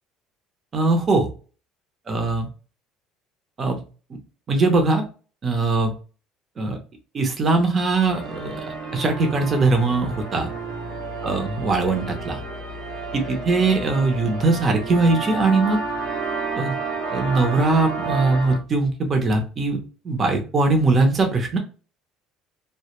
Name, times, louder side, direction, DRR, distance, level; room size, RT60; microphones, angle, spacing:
voice 1, 0.7-1.3 2.1-2.5 3.6-3.8 4.5-5.0 5.4-5.9 6.6-6.8 7.1-8.6 8.9-10.5 11.2-12.4 13.1-15.8 16.5-16.7 17.1-19.8 20.0-21.6, right 3 dB, 35° right, 4 dB, 0.6 m, -21 dB
sound 1, 8.1-18.6, right 4 dB, 80° right, 0.8 m, -31 dB
2.2 x 2.1 x 2.9 m, 0.36 s
cardioid pair, 115°, 0 cm